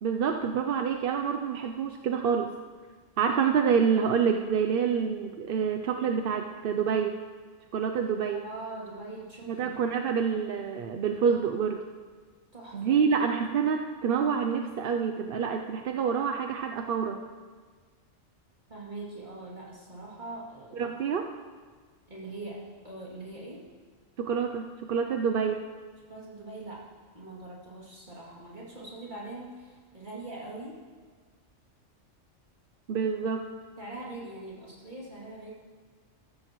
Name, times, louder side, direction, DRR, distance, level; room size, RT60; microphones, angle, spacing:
voice 1, 0.0-2.5 3.2-7.2 7.7-8.4 9.5-11.9 12.7-17.2 20.8-21.3 24.2-25.6 32.9-33.5, right 6 dB, 55° right, 4 dB, 0.7 m, -27 dB
voice 2, 8.3-9.7 12.5-13.0 18.7-20.8 22.1-23.6 26.1-26.9 27.1-30.8 33.2-33.3 33.8-35.5, right 2 dB, 40° right, -5 dB, 2.9 m, -42 dB
14.5 x 13.5 x 3.1 m, 1.5 s
omnidirectional pair, 1.3 m